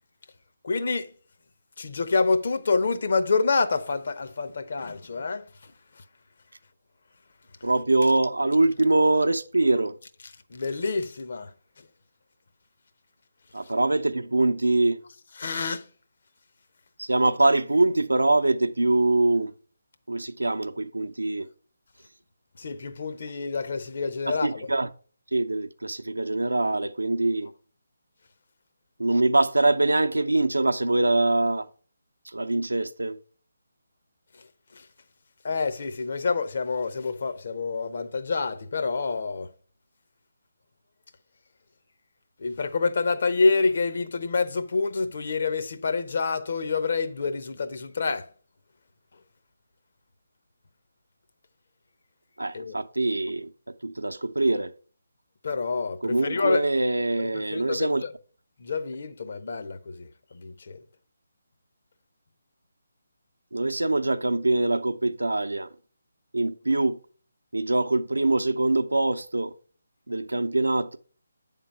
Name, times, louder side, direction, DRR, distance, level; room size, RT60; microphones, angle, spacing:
voice 1, 0.6-1.1 1.8-5.5 10.5-11.5 15.4-15.8 22.6-24.7 34.7-34.9 35.4-39.5 42.4-48.3 52.5-52.8 55.4-56.7 57.3-58.1 58.6-60.8, left 4 dB, 55° left, 0.7 m, -27 dB
voice 2, 7.6-9.9 13.5-15.0 17.0-19.5 20.1-21.5 24.3-24.9 25.3-27.5 29.0-31.7 32.3-33.2 52.4-53.5 53.8-54.7 56.0-58.0 63.5-65.7 66.3-67.0 67.5-69.5 70.1-71.0, right 2 dB, 80° right, 0.6 m, -23 dB
8.4 x 3.7 x 5.4 m
figure-of-eight pair, 150°, 0 cm